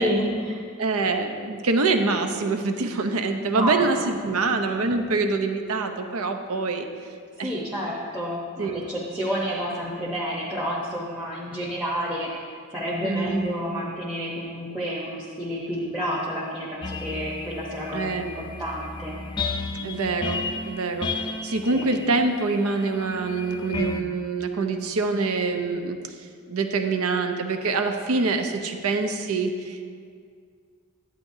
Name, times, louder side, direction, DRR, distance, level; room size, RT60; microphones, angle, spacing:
voice 1, 0.0-0.7 3.5-3.9 7.4-12.3 12.7-19.2 21.7-21.9, equal, 5° right, -6 dB, 0.9 m, -29 dB
voice 2, 0.8-6.9 7.4-7.5 8.6-8.8 13.0-13.4 17.9-18.3 19.8-26.0 26.5-29.9, right 3 dB, 80° right, 6 dB, 0.7 m, -25 dB
sound 1, 16.8-24.0, left 3 dB, 20° left, 0.4 m, -33 dB
10.0 x 9.0 x 2.7 m, 2.1 s
head